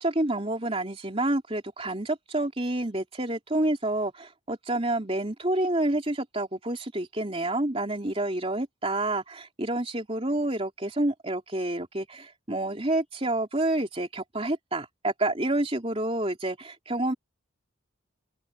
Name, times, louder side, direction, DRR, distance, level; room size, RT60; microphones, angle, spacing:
voice 1, 0.0-17.1, right 1 dB, 25° right, 3.4 m, -28 dB
open air
head